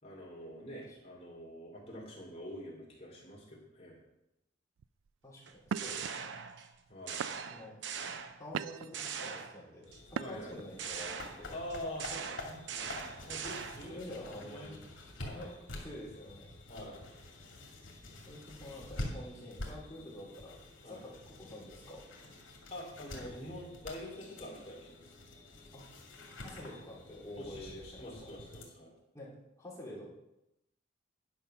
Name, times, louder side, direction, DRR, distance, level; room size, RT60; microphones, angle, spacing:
voice 1, 0.0-4.0 6.9-7.4 10.2-10.5 11.5-14.8 15.2-15.6 16.7-17.0 20.8-21.0 22.7-25.1 27.3-28.9, equal, 30° left, -3 dB, 3.0 m, -46 dB
sound 1, 4.8-5.1 5.6-6.1 6.7-6.9 7.2-7.7 8.2-9.0 10.1-10.6, right 7 dB, 85° right, 0.3 m, -39 dB
voice 2, 5.2-6.3 7.5-7.8 8.4-11.6 13.9-14.8 15.3-15.5 15.8-16.5 18.2-20.6 20.8-22.0 25.7-25.9 26.3-28.3 29.1-30.0, left 1 dB, 15° left, -6 dB, 3.1 m, -48 dB
sound 2, 5.5-6.7 7.1-8.6 8.9-10.0 10.8-14.0, right 6 dB, 65° right, 0.7 m, -41 dB
sound 3, 9.9-28.6, left 1 dB, 80° left, 2.4 m, -48 dB
10.5 x 5.7 x 5.7 m, 0.88 s
head